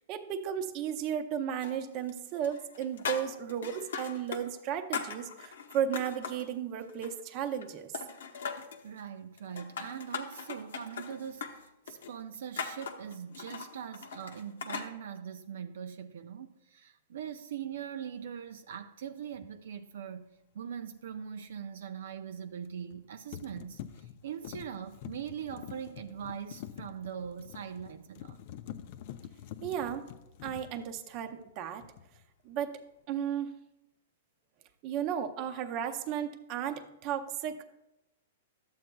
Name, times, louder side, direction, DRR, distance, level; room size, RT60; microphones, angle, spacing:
voice 1, 0.0-7.9 29.6-30.1 30.4-31.9 32.4-32.8 33.1-33.5 34.8-37.8, right 9 dB, 35° right, 0.6 m, -34 dB
sound 1, 1.6-2.2 2.4-4.4 4.7-6.5 6.9-7.7 7.9-8.8 9.4-14.9, left 6 dB, 85° left, 0.9 m, -39 dB
voice 2, 8.8-28.4, right 8 dB, 75° right, 0.4 m, -42 dB
sound 2, 19.3-19.5 22.6-23.0 23.3-31.5 31.8-32.3, left 10 dB, 50° left, 0.4 m, -47 dB
12.0 x 7.8 x 2.3 m
hypercardioid pair, 155°, 0 cm